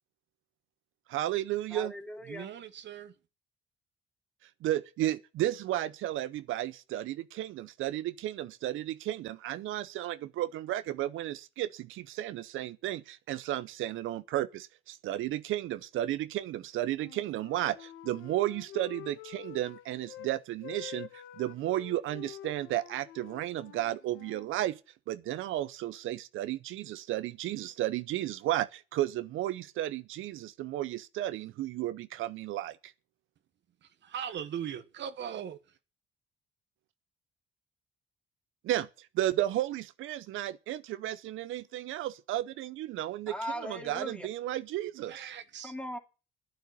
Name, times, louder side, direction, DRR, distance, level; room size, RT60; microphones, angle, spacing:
voice 1, 1.1-1.9 4.6-24.8 25.1-32.9 38.6-43.3 43.6-45.1, right 14 dB, 85° right, 0.6 m, -33 dB
voice 2, 1.7-2.5 43.3-44.3 45.6-46.0, equal, 5° left, 2.7 m, -39 dB
voice 3, 2.3-3.1 33.8-35.8 45.1-45.7, right 9 dB, 65° right, 1.1 m, -40 dB
Wind instrument woodwind instrument, 16.9-20.3 20.6-24.5, left 12 dB, 85° left, 1.2 m, -48 dB
10.5 x 9.2 x 8.3 m
cardioid pair, 90°, 20 cm